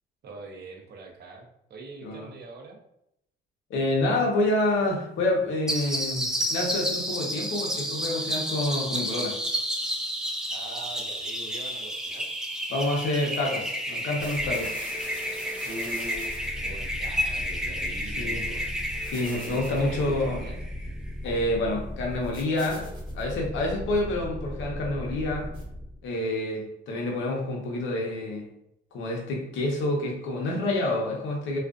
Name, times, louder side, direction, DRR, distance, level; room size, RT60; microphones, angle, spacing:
voice 1, 0.2-2.8 10.5-12.3 15.6-18.6 19.5-20.6 30.4-30.5, right 2 dB, 55° right, 1 dB, 0.6 m, -42 dB
voice 2, 3.7-9.4 12.7-14.8 18.2-18.5 19.1-20.4 21.2-22.9 23.1-25.5 26.0-28.5 28.9-31.6, left 2 dB, 75° left, 0 dB, 0.7 m, -28 dB
sound 1, 5.7-20.9, equal, 5° right, 0.4 m, -31 dB
sound 2, 14.2-26.0, equal, 25° right, 1.1 m, -38 dB
2.4 x 2.3 x 2.4 m, 0.79 s
cardioid pair, 90°, 20 cm